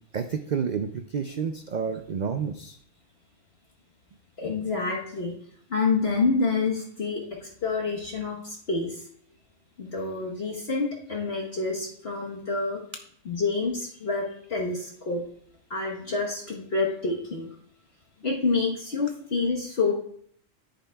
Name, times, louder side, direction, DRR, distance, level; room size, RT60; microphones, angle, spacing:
voice 1, 0.1-2.8, right 6 dB, 70° right, 7 dB, 0.4 m, -30 dB
voice 2, 4.4-5.3 5.7-9.0 9.8-12.8 13.2-15.2 15.7-17.5 18.2-19.9, left 4 dB, 50° left, -3 dB, 1.4 m, -28 dB
10.5 x 9.1 x 2.3 m, 0.62 s
omnidirectional pair, 1.4 m